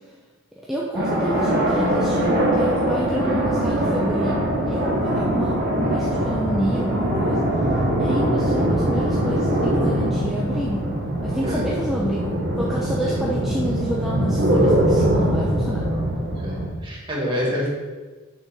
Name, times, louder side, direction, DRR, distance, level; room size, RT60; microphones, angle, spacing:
voice 1, 0.7-4.3 4.7-7.5 8.0-10.9 11.2-15.9, right 1 dB, ahead, -5 dB, 0.5 m, -29 dB
sound 1, 0.9-16.7, right 1 dB, 45° right, 1.0 m, -22 dB
voice 2, 16.8-17.7, left 1 dB, 20° right, -3 dB, 1.4 m, -26 dB
6.4 x 3.8 x 5.4 m, 1.3 s
head